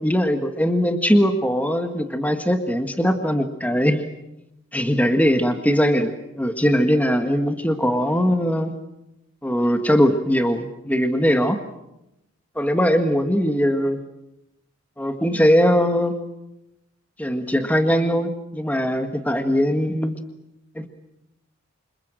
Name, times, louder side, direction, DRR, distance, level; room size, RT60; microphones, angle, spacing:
voice 1, 0.0-4.0 4.7-8.7 9.4-11.6 12.5-14.0 15.0-16.2 17.2-20.2 20.7-20.9, equal, 5° left, 7 dB, 1.5 m, -20 dB
28.0 x 26.5 x 7.6 m, 0.89 s
head